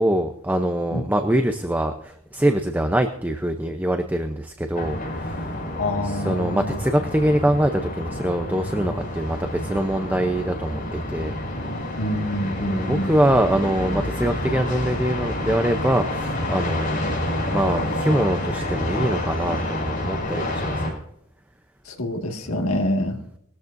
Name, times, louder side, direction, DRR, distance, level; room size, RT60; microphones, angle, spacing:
voice 1, 0.0-5.5 6.0-11.4 12.7-21.0 22.5-22.6 23.0-23.3, right 1 dB, 10° right, 6 dB, 0.7 m, -24 dB
sound 1, 4.7-20.9, left 1 dB, 40° left, 5.6 m, -28 dB
voice 2, 5.8-6.8 12.0-13.1 21.9-23.2, left 1 dB, 75° left, 2 dB, 2.0 m, -26 dB
19.5 x 13.5 x 2.6 m, 0.72 s
head